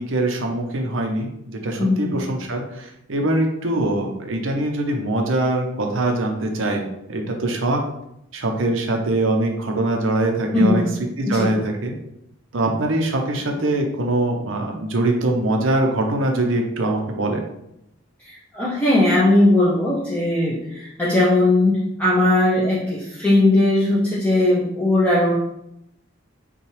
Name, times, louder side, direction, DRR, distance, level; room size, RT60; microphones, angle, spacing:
voice 1, 0.0-6.8 7.1-7.8 8.3-10.8 11.2-11.9 12.5-17.4, right 2 dB, 70° right, 3 dB, 0.7 m, -23 dB
voice 2, 1.8-2.1 10.5-11.0 11.2-11.5 18.2-25.3, left 1 dB, 5° left, -7 dB, 0.6 m, -18 dB
5.5 x 2.3 x 3.2 m, 0.81 s
head